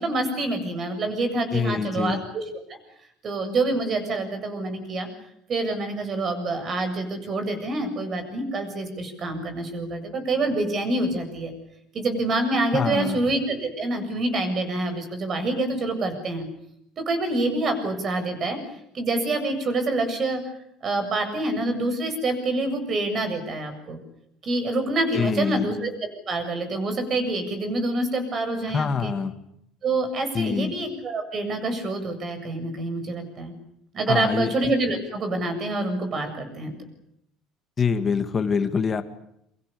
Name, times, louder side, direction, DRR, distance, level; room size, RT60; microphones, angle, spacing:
voice 1, 0.0-2.4 2.7-2.8 3.2-5.1 5.5-11.5 11.9-16.5 17.0-18.6 18.9-20.4 20.8-24.0 24.4-25.9 26.3-29.1 29.8-33.6 33.9-36.7, right 2 dB, 35° right, 8 dB, 7.3 m, -26 dB
voice 2, 1.5-2.2 12.7-13.2 25.1-25.7 28.7-29.3 30.3-30.7 34.1-34.5 37.8-39.0, left 5 dB, 25° left, 8 dB, 2.3 m, -25 dB
30.0 x 25.0 x 7.1 m, 0.76 s
cardioid pair, 140°, 0 cm